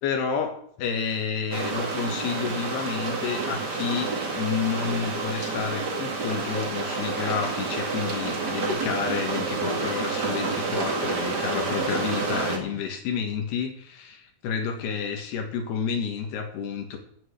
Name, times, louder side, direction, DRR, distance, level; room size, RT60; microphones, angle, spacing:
voice 1, 0.0-4.1 4.4-17.0, left 6 dB, 65° left, 4 dB, 3.6 m, -30 dB
sound 1, 1.5-12.6, right 3 dB, 60° right, 1.0 m, -29 dB
13.0 x 7.2 x 8.4 m, 0.64 s
omnidirectional pair, 5.5 m